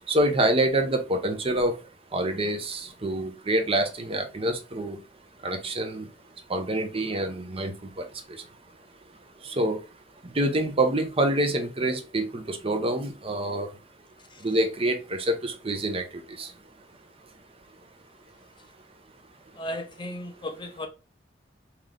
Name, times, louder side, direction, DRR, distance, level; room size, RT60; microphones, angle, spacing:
voice 1, 0.1-1.8 2.1-5.0 5.4-6.1 6.5-8.0 9.4-9.8 10.3-13.7 14.4-16.5, right 1 dB, 30° right, 0.7 m, -26 dB
voice 2, 19.6-20.9, left 1 dB, 25° left, 0.5 m, -35 dB
3.8 x 3.0 x 3.3 m
head